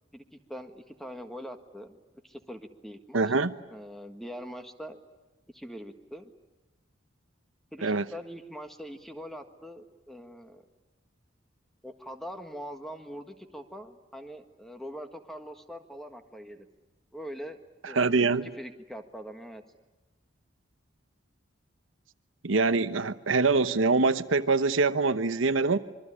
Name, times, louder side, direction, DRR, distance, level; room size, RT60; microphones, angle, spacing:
voice 1, 0.5-2.0 2.2-3.3 3.7-5.0 5.5-6.3 7.7-10.6 11.8-16.7 17.1-17.6 17.8-19.6, equal, ahead, 6 dB, 1.6 m, -43 dB
voice 2, 3.1-3.5 7.8-8.0 17.9-18.5 22.4-25.8, right 3 dB, 75° right, 10 dB, 1.0 m, -24 dB
26.0 x 23.0 x 10.0 m, 1.1 s
head